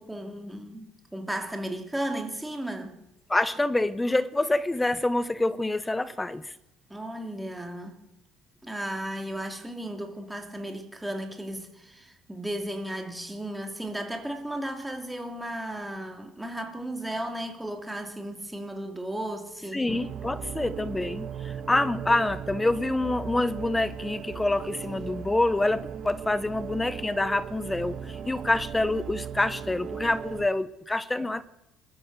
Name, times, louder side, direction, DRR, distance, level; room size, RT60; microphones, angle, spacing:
voice 1, 0.0-3.0 6.9-8.0 8.6-19.8 31.2-31.3, right 1 dB, 5° right, 2.7 m, -35 dB
voice 2, 3.3-6.5 19.7-31.4, left 2 dB, 10° left, 0.7 m, -27 dB
sound 1, 19.9-30.5, right 8 dB, 45° right, 1.3 m, -37 dB
24.0 x 13.5 x 8.1 m
cardioid pair, 135°, 0 cm